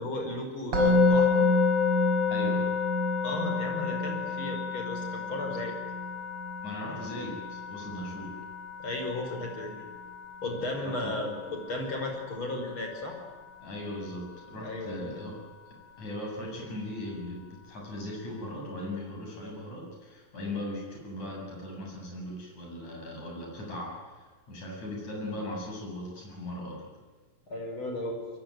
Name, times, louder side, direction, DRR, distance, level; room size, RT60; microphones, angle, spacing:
voice 1, 0.0-1.5 3.2-5.8 8.8-9.9 10.4-13.2 14.6-15.1 27.5-28.2, left 2 dB, 35° left, 3 dB, 6.1 m, -35 dB
Musical instrument, 0.7-11.8, left 4 dB, 40° right, 7.5 m, -28 dB
voice 2, 2.3-2.7 6.6-8.4 10.8-11.2 13.6-15.4 16.0-26.9, left 1 dB, 55° left, -1 dB, 9.1 m, -38 dB
25.0 x 23.0 x 9.5 m, 1.3 s
omnidirectional pair, 4.0 m